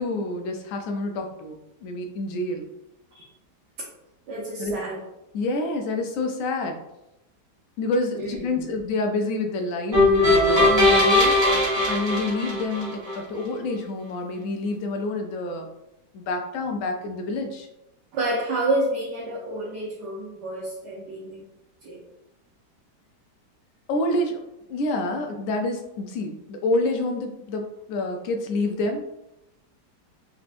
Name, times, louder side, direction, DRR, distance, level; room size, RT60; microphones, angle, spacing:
voice 1, 0.0-2.6 4.6-4.7 5.3-6.8 7.8-15.7 16.1-17.7 23.9-24.4 24.7-29.1, left 2 dB, 65° left, 4 dB, 0.8 m, -28 dB
voice 2, 4.3-5.0 8.1-8.6 18.1-21.4 21.8-22.0, right 1 dB, 80° right, -5 dB, 1.5 m, -29 dB
sound 1, 9.9-13.1, left 1 dB, 25° right, 1.3 m, -19 dB
3.8 x 3.4 x 2.5 m, 0.88 s
omnidirectional pair, 1.8 m